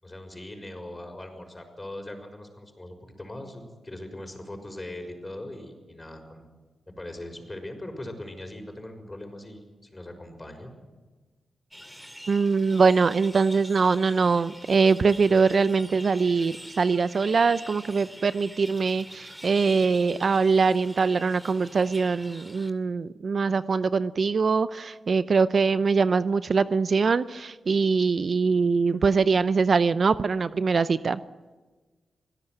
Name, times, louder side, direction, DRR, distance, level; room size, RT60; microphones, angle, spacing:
voice 1, 0.0-6.5 6.9-10.7, left 1 dB, 20° left, 5 dB, 6.0 m, -40 dB
sound 1, 11.7-22.7, equal, 5° right, 2.4 m, -45 dB
voice 2, 12.3-31.2, right 4 dB, 55° right, 14 dB, 0.6 m, -23 dB
25.5 x 17.0 x 8.1 m, 1.3 s
cardioid pair, 60°, 0 cm